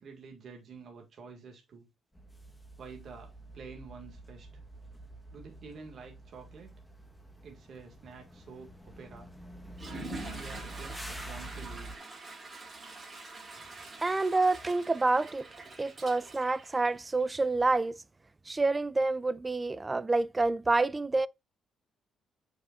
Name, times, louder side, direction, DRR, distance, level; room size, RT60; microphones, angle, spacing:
voice 1, 0.0-1.9 2.8-4.5 5.3-6.8 7.4-9.3 9.8-12.1, right 5 dB, 60° right, 1.9 m, -49 dB
sound 1, 2.1-12.0, right 1 dB, 5° left, 1.3 m, -47 dB
Water / Toilet flush, 9.7-17.4, right 2 dB, 35° right, 3.4 m, -45 dB
voice 2, 14.0-15.4 15.8-18.0 18.5-21.3, right 3 dB, 20° right, 0.4 m, -28 dB
7.4 x 6.1 x 2.5 m
cardioid pair, 90°, 0 cm